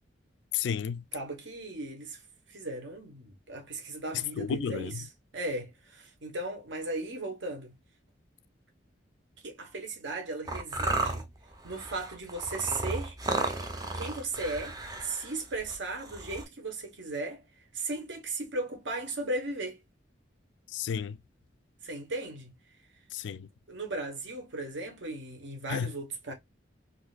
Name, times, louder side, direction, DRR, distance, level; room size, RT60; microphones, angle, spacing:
voice 1, 0.5-1.0 4.4-4.9 20.7-21.2 23.1-23.5 25.7-25.9, left 7 dB, 70° left, 0.3 m, -32 dB
voice 2, 1.1-2.2 2.5-5.0 5.3-7.7 9.4-11.3 11.6-13.2 13.9-14.8 15.0-17.4 17.7-19.8 21.8-22.5 23.7-26.3, right 2 dB, 75° right, 1.1 m, -36 dB
sound 1, 10.5-16.4, right 2 dB, 20° right, 0.5 m, -34 dB
3.8 x 2.6 x 2.3 m
head